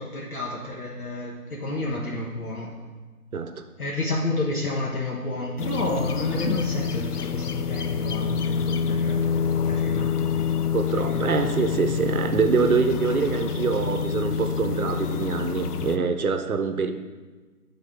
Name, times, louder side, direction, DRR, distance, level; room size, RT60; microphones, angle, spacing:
voice 1, 0.0-2.7 3.8-9.2 9.6-10.4 10.9-11.3, left 2 dB, 70° left, -3 dB, 1.1 m, -30 dB
voice 2, 3.3-3.7 10.7-16.9, right 5 dB, 70° right, 8 dB, 0.7 m, -25 dB
sound 1, 5.6-16.0, left 6 dB, 90° left, 0.6 m, -27 dB
9.1 x 3.6 x 3.6 m, 1.3 s
figure-of-eight pair, 175°, 45 cm